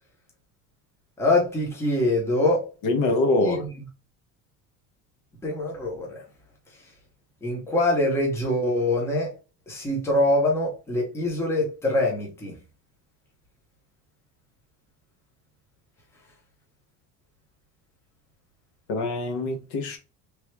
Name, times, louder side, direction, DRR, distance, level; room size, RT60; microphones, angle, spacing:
voice 1, 1.2-2.7 3.4-3.6 5.4-6.2 7.4-9.3 9.7-12.5, left 1 dB, 10° left, 0.6 m, -24 dB
voice 2, 2.8-3.6 18.9-20.0, left 2 dB, 75° left, 0.9 m, -24 dB
3.2 x 2.2 x 3.1 m
cardioid pair, 180°, 33 cm